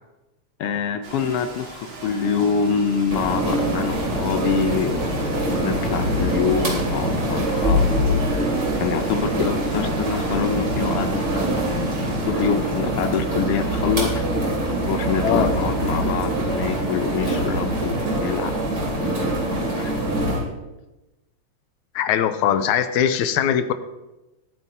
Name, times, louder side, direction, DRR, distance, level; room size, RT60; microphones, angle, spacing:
voice 1, 0.6-5.1 5.6-11.8 12.2-18.7 19.1-19.9 20.2-20.4, left 6 dB, 70° left, 8 dB, 1.5 m, -26 dB
Rain, 1.0-12.3, right 1 dB, 60° right, 3.5 m, -33 dB
sound 1, 3.1-20.4, right 1 dB, 35° right, 3.3 m, -24 dB
sound 2, 8.8-17.9, right 6 dB, 75° right, 1.8 m, -36 dB
voice 2, 15.2-15.5 22.0-23.7, left 9 dB, 90° left, 11 dB, 2.1 m, -21 dB
21.0 x 9.2 x 2.8 m, 1.0 s
omnidirectional pair, 3.3 m